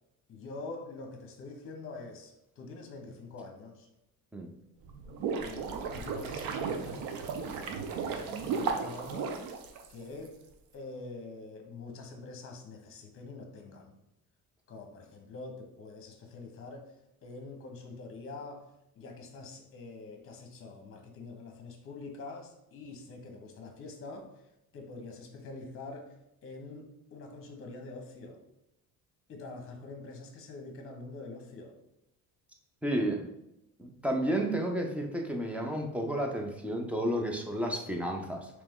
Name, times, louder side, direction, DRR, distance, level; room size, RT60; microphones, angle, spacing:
voice 1, 0.3-3.9 5.4-7.4 7.8-9.4 9.9-10.4 10.7-13.9 14.7-16.9 17.2-18.7 19.0-24.4 24.7-26.1 26.4-28.4 29.3-31.7, left 3 dB, 40° left, 3 dB, 0.9 m, -45 dB
sound 1, 4.8-10.3, right 5 dB, 80° right, 0.6 m, -35 dB
voice 2, 32.8-33.3 33.8-38.5, right 1 dB, 5° right, 2 dB, 0.5 m, -31 dB
3.3 x 3.0 x 3.6 m, 0.85 s
cardioid pair, 130°, 34 cm